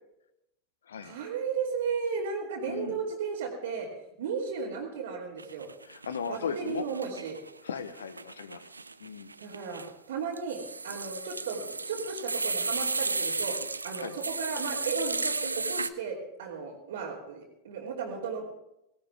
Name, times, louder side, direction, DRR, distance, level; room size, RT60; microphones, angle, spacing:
voice 1, 1.0-3.9 4.2-5.7 6.3-7.4 9.4-18.5, right 5 dB, 65° right, -7 dB, 3.0 m, -35 dB
voice 2, 2.7-3.0 5.8-6.9 7.6-8.7 9.0-9.3 14.0-14.1, left 6 dB, 70° left, 13 dB, 1.1 m, -37 dB
sound 1, 5.4-6.4 6.7-15.9, right 3 dB, 85° right, 0.5 m, -34 dB
18.0 x 17.5 x 3.6 m, 0.86 s
figure-of-eight pair, 85°, 0 cm